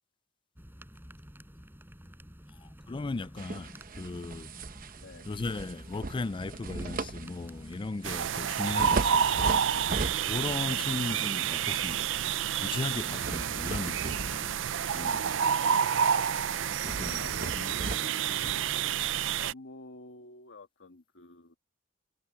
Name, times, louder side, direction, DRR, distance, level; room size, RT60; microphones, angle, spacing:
sound 1, 0.6-7.8, equal, 10° right, 6.3 m, -51 dB
voice 1, 2.6-4.6 5.2-9.5 10.2-12.1 12.6-14.7 14.9-15.3 16.8-17.2 17.6-17.8, left 3 dB, 25° left, 0.4 m, -37 dB
sound 2, 3.4-10.7 11.1-11.3 12.9-15.1 15.5-15.7 16.0-16.1 16.6-19.3, right 3 dB, 50° right, 0.9 m, -38 dB
sound 3, 8.0-19.5, right 8 dB, 80° right, 0.5 m, -29 dB
voice 2, 10.6-11.0 17.2-18.7 19.4-21.6, left 2 dB, 85° left, 1.8 m, -49 dB
head